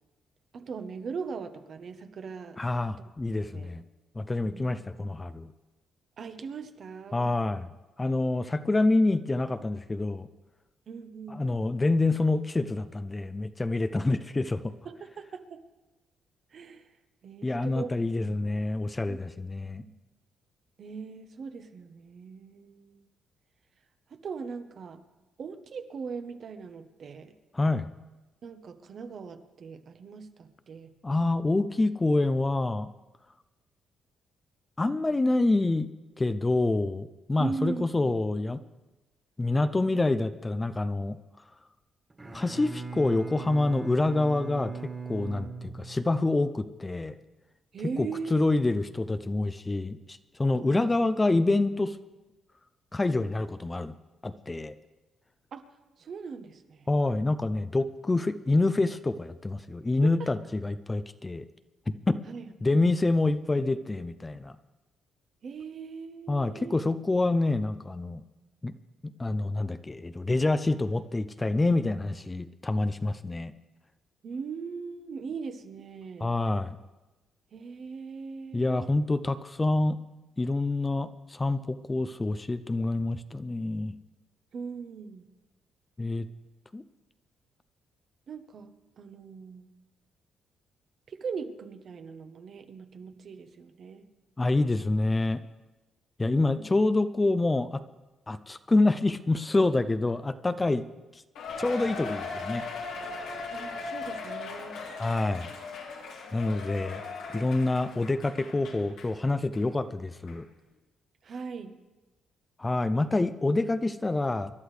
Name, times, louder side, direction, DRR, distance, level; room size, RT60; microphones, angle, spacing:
voice 1, 0.5-2.6 3.5-3.7 4.4-4.7 6.2-7.3 10.9-11.4 14.8-15.6 16.5-16.8 17.2-17.9 18.3-18.4 19.1-19.2 19.8-19.9 20.8-23.0 24.1-25.0 25.4-27.3 28.4-30.9 37.4-38.1 47.7-48.6 50.5-50.9 55.5-55.6 56.0-56.9 60.0-60.3 62.3-62.5 65.4-66.8 74.2-76.3 77.5-78.9 84.5-85.2 88.3-89.7 91.1-94.1 96.3-96.7 103.5-104.8 111.2-111.7, right 5 dB, 55° right, 8 dB, 1.1 m, -40 dB
voice 2, 2.6-3.8 4.2-5.5 7.1-7.7 8.0-10.3 11.3-14.7 17.4-19.8 27.5-27.9 31.0-32.9 34.8-35.9 36.2-38.6 39.4-41.2 42.3-44.7 45.1-47.2 48.0-50.0 50.4-52.0 52.9-53.9 54.2-54.7 56.9-61.5 62.1-62.2 62.6-64.5 66.3-68.2 68.6-68.7 69.2-73.5 76.2-76.8 78.5-80.0 80.4-83.9 86.0-86.3 86.7-86.8 94.4-95.4 96.2-97.8 98.3-100.8 101.6-102.6 105.0-105.5 106.3-107.0 107.3-110.5 112.6-114.5, left 2 dB, 20° left, 12 dB, 0.5 m, -27 dB
Bowed string instrument, 42.1-46.4, right 5 dB, 20° right, 1.9 m, -39 dB
Cheering, 101.3-109.1 109.5-109.6 110.3-110.4, left 4 dB, 85° left, 2.2 m, -38 dB
25.5 x 11.5 x 3.3 m, 1.1 s
cardioid pair, 90°, 0 cm